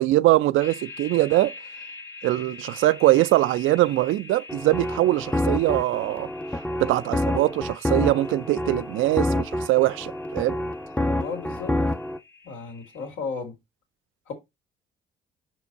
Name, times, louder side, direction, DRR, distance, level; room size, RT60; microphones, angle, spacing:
voice 1, 0.0-1.5 2.2-6.3 6.8-10.6, right 16 dB, 85° right, 0.4 m, -22 dB
sound 1, 0.6-13.1, left 4 dB, 70° left, 2.0 m, -45 dB
sound 2, 4.5-12.2, left 1 dB, 5° left, 0.5 m, -28 dB
voice 2, 11.2-11.7 12.4-13.5 14.3-14.4, left 5 dB, 90° left, 2.3 m, -34 dB
5.3 x 4.5 x 4.0 m
cardioid pair, 90°, 20 cm